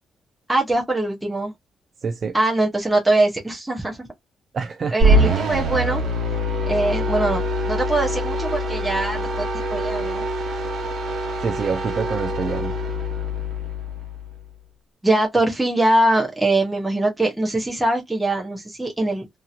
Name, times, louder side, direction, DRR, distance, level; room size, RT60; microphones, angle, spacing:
voice 1, 0.5-1.5 2.3-4.0 4.9-6.0 6.6-10.3 15.0-19.4, right 2 dB, 5° right, 0.8 m, -22 dB
voice 2, 2.0-2.4 4.5-5.0 11.4-12.8, right 5 dB, 35° right, 0.3 m, -26 dB
sound 1, 5.0-14.4, equal, 65° right, 1.0 m, -24 dB
2.8 x 2.8 x 2.3 m
cardioid pair, 175°, 0 cm